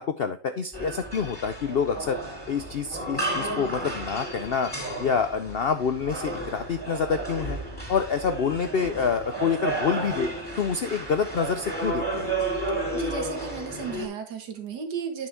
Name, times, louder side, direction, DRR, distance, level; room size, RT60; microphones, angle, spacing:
voice 1, 0.0-2.2 2.5-4.7 5.0-7.6 7.9-10.3 10.6-12.3, left 6 dB, 70° left, 9 dB, 0.5 m, -27 dB
sound 1, 0.7-14.1, right 2 dB, 5° left, 3.1 m, -32 dB
voice 2, 12.9-15.3, right 5 dB, 80° right, 5 dB, 2.1 m, -34 dB
9.3 x 6.3 x 3.4 m, 0.35 s
omnidirectional pair, 1.8 m